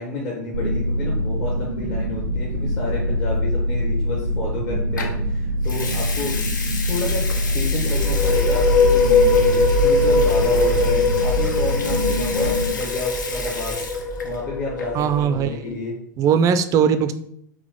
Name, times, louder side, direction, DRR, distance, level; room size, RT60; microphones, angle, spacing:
voice 1, 0.0-6.4 6.9-7.3 7.5-13.8 14.2-15.9, left 3 dB, 50° left, -4 dB, 1.1 m, -30 dB
sound 1, 0.5-12.7, left 1 dB, 80° right, 0.6 m, -24 dB
Water tap faucet / Sink (filling or washing) / Liquid, 5.0-5.2 5.6-14.4 14.7-15.0, left 4 dB, 80° left, 0.6 m, -33 dB
sound 2, 7.8-15.5, left 3 dB, 25° left, 0.7 m, -21 dB
voice 2, 14.9-15.8 16.2-17.1, right 7 dB, 35° right, 10 dB, 0.4 m, -19 dB
3.9 x 2.9 x 3.5 m, 0.67 s
figure-of-eight pair, 85°, 10 cm